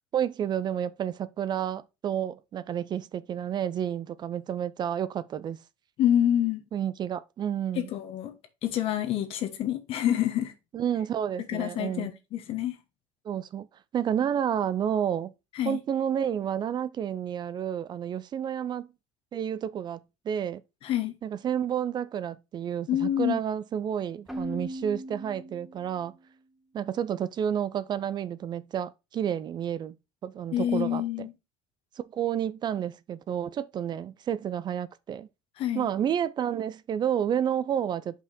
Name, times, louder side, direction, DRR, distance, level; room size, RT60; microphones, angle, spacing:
voice 1, 0.1-5.6 6.7-7.9 10.7-12.1 13.2-13.7 13.9-15.3 15.6-18.9 19.3-20.6 21.2-26.1 26.7-30.0 30.2-31.3 32.0-35.3 35.7-38.2, right 9 dB, 40° right, 0.5 m, -30 dB
voice 2, 6.0-6.6 7.7-8.3 8.6-10.5 11.4-12.7 15.5-15.8 20.8-21.2 22.9-23.4 30.5-31.3 35.6-35.9, left 11 dB, 60° left, 1.3 m, -27 dB
Keyboard (musical), 24.3-26.1, right 1 dB, 5° right, 1.4 m, -38 dB
5.5 x 4.8 x 4.2 m
supercardioid pair, 90°, 11 cm